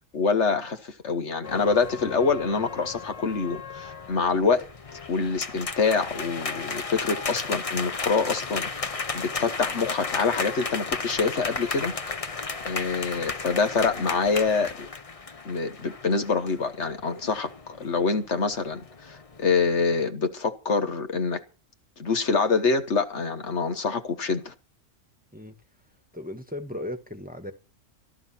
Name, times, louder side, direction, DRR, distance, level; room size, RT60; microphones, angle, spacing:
voice 1, 0.1-4.7 5.1-11.9 12.6-14.9 15.4-21.4 22.0-24.5, left 4 dB, 65° left, 1.6 m, -26 dB
sound 1, 1.4-20.1, left 4 dB, 30° left, 0.9 m, -35 dB
voice 2, 26.1-27.5, left 1 dB, 5° right, 1.4 m, -36 dB
13.5 x 12.5 x 5.8 m
omnidirectional pair, 1.3 m